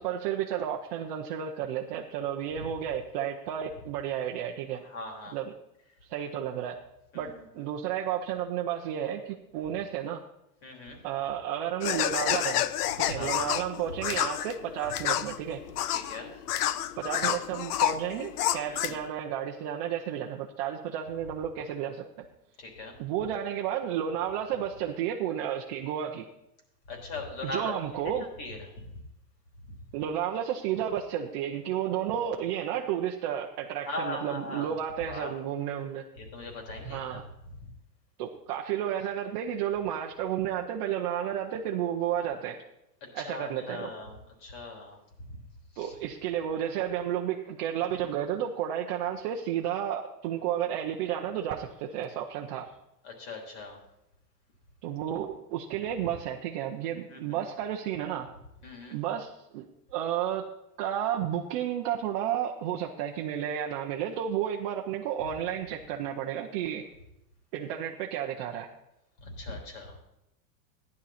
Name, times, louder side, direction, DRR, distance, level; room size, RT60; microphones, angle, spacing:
voice 1, 0.0-4.8 5.3-5.5 6.1-6.8 7.1-10.2 11.0-12.6 13.1-15.6 17.0-22.0 23.0-26.2 27.4-28.3 29.9-36.0 36.8-37.2 38.2-42.7 43.1-43.9 45.8-52.7 54.8-58.3 58.9-60.5 60.8-66.9 67.5-68.7, right 10 dB, 30° right, 0 dB, 0.7 m, -32 dB
voice 2, 4.8-5.4 7.1-7.4 10.6-11.0 13.1-13.5 15.9-16.3 18.7-19.0 22.6-23.0 26.9-27.7 28.2-28.7 33.9-34.7 35.0-35.3 36.2-37.2 43.0-45.0 45.7-45.9 53.0-53.8 57.1-57.4 58.6-59.0 69.2-70.0, left 2 dB, 40° left, 1 dB, 3.5 m, -40 dB
sound 1, 11.8-19.1, left 12 dB, 80° left, 0.8 m, -29 dB
15.5 x 10.5 x 4.2 m, 0.86 s
supercardioid pair, 175°, 46 cm